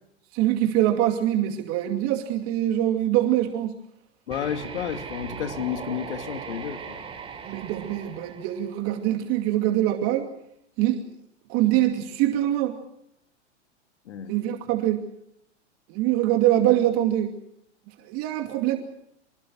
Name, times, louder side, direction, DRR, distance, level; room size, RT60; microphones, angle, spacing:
voice 1, 0.3-3.8 7.4-10.3 10.8-11.0 11.5-12.8 14.3-15.0 15.9-17.3 17.9-18.8, right 13 dB, 40° right, 5 dB, 2.5 m, -24 dB
voice 2, 4.3-7.1 14.1-14.3, left 9 dB, 70° left, 8 dB, 2.6 m, -31 dB
sound 1, 4.3-9.2, right 6 dB, 15° right, 5.4 m, -39 dB
25.5 x 22.0 x 6.4 m, 0.76 s
hypercardioid pair, 120°, 35 cm